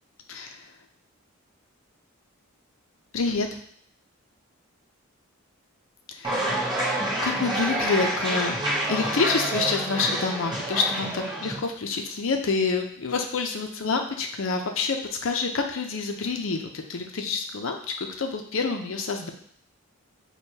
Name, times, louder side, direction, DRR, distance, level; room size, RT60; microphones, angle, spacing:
voice 1, 3.1-3.5 6.1-6.5 7.2-8.6 8.9-15.0 15.2-19.3, left 4 dB, 60° left, 4 dB, 0.5 m, -27 dB
sound 1, 6.2-11.6, right 1 dB, 20° right, 0.7 m, -28 dB
6.3 x 2.3 x 2.7 m, 0.64 s
head